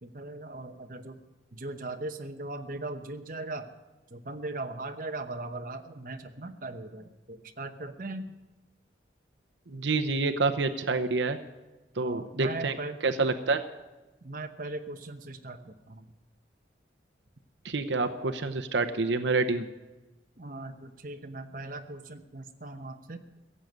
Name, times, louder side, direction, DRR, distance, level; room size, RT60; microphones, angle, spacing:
voice 1, 0.0-1.2 1.5-3.7 4.1-8.4 12.0-13.0 14.2-16.1 20.4-23.2, right 2 dB, 45° right, 5 dB, 0.9 m, -39 dB
voice 2, 9.7-11.4 12.0-12.7 13.0-13.6 17.6-19.7, right 3 dB, 75° right, 7 dB, 0.8 m, -27 dB
16.5 x 7.6 x 9.4 m, 1.1 s
head